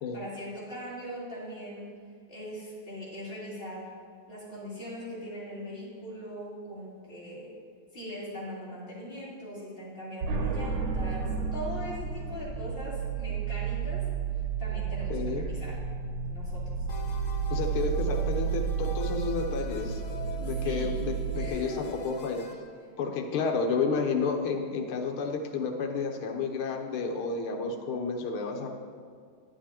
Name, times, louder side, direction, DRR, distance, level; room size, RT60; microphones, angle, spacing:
voice 1, 0.1-1.9 2.3-3.9 4.3-7.5 7.9-14.1 14.3-15.8 16.2-16.7 20.5-20.9 21.3-21.9, equal, 25° left, -9 dB, 2.8 m, -41 dB
sound 1, 10.2-21.5, right 6 dB, 75° right, 0.8 m, -32 dB
voice 2, 15.1-15.5 17.5-20.0 20.4-22.5 23.0-28.7, left 4 dB, 80° left, 3 dB, 1.7 m, -31 dB
sound 2, 16.9-22.5, left 5 dB, 65° left, 0.7 m, -44 dB
10.5 x 10.0 x 2.9 m, 2.1 s
omnidirectional pair, 2.4 m